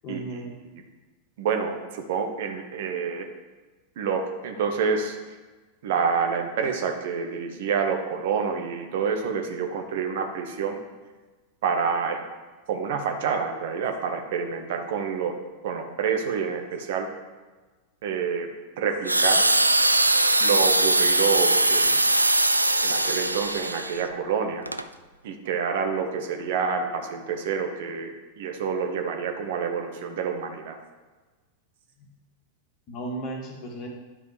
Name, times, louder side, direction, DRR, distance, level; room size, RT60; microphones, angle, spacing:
voice 1, 0.0-0.5 32.0-32.1 32.9-33.9, right 2 dB, 35° left, 0 dB, 1.7 m, -35 dB
voice 2, 1.4-3.3 4.0-5.2 5.8-10.8 11.6-12.2 12.7-15.4 15.6-17.1 18.0-18.5 18.8-19.4 20.4-22.0 22.8-24.7 25.2-30.8, right 6 dB, 55° right, 4 dB, 1.0 m, -28 dB
sound 1, 19.1-24.0 24.7-24.8, right 1 dB, 85° right, 0.3 m, -21 dB
10.0 x 4.8 x 4.9 m, 1.3 s
figure-of-eight pair, 90°, 0 cm